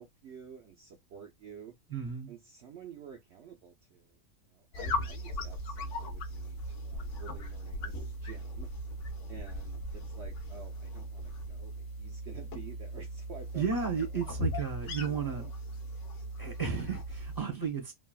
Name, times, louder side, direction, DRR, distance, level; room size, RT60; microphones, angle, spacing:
voice 1, 0.0-1.8 2.3-8.7 9.3-14.4 15.0-15.5, right 7 dB, 65° right, 0.7 m, -51 dB
voice 2, 1.9-2.3 13.5-15.5 16.4-17.9, right 6 dB, 20° left, 0.6 m, -33 dB
sound 1, 4.7-17.4, equal, 60° left, 0.9 m, -38 dB
3.3 x 2.3 x 2.3 m
omnidirectional pair, 1.6 m